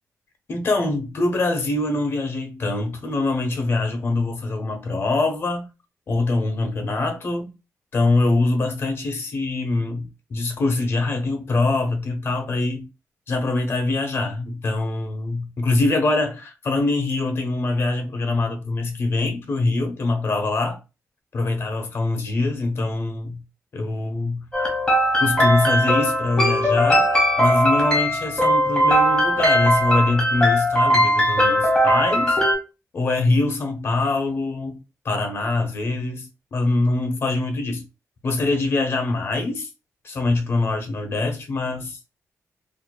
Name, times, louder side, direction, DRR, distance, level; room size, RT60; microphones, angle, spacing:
voice 1, 0.5-5.7 6.1-7.5 7.9-12.9 13.3-20.8 21.3-23.4 23.7-24.4 25.2-27.1 27.4-32.4 32.9-34.8 35.0-37.8 38.2-39.7 40.0-42.0, left 2 dB, 45° left, 0.7 m, -23 dB
sound 1, 24.5-32.5, equal, 15° left, 1.1 m, -19 dB
4.4 x 2.5 x 2.2 m
wide cardioid pair, 170°, 6 cm